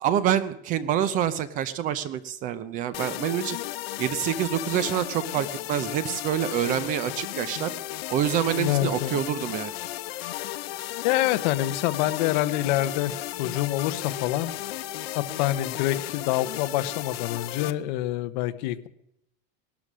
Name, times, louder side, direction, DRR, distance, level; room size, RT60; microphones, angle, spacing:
voice 1, 0.0-3.6 4.0-7.7 8.1-9.7, right 10 dB, 30° right, 15 dB, 0.6 m, -26 dB
sound 1, 2.9-17.7, left 15 dB, 90° left, 0.9 m, -34 dB
voice 2, 8.5-9.2 11.0-14.5 15.1-18.9, left 14 dB, 50° left, 13 dB, 0.9 m, -26 dB
19.0 x 12.0 x 6.2 m, 0.80 s
supercardioid pair, 175°, 29 cm